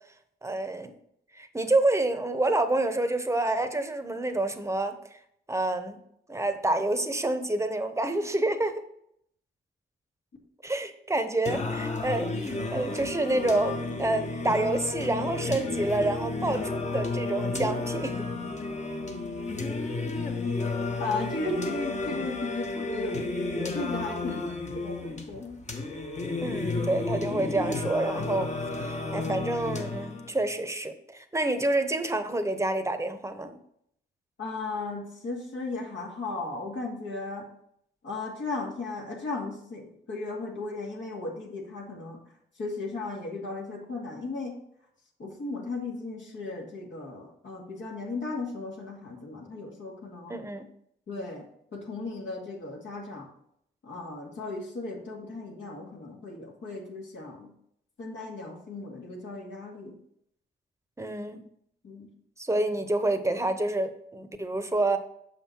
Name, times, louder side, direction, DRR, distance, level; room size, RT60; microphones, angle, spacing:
voice 1, 0.4-1.0 1.3-5.2 5.5-6.0 6.3-8.8 10.6-18.2 24.3-24.4 26.4-28.5 28.8-33.6 50.3-50.7 61.0-61.4 62.4-65.0, right 2 dB, 15° right, 9 dB, 1.0 m, -28 dB
Singing, 11.4-30.4, left 3 dB, 35° left, 1.3 m, -32 dB
voice 2, 21.0-24.4 24.7-25.6 26.4-26.6 34.4-37.4 38.0-42.2 42.6-44.6 45.2-50.3 51.1-51.4 51.7-53.3 53.8-57.5 58.0-60.0 61.8-62.1, left 3 dB, 65° left, -2 dB, 2.3 m, -36 dB
6.9 x 5.7 x 4.5 m, 0.72 s
supercardioid pair, 60°, 20 cm